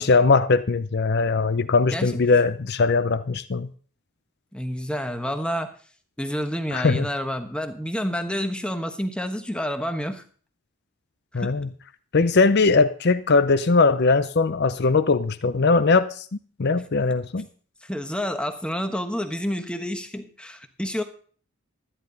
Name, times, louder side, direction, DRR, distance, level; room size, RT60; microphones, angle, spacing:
voice 1, 0.0-3.7 6.7-7.1 11.3-11.7 12.1-17.5, left 4 dB, 50° left, 13 dB, 0.6 m, -20 dB
voice 2, 1.9-2.2 4.5-5.7 6.2-10.2 11.3-11.6 17.8-21.0, equal, 5° left, 7 dB, 1.1 m, -29 dB
13.0 x 11.0 x 4.0 m, 0.43 s
head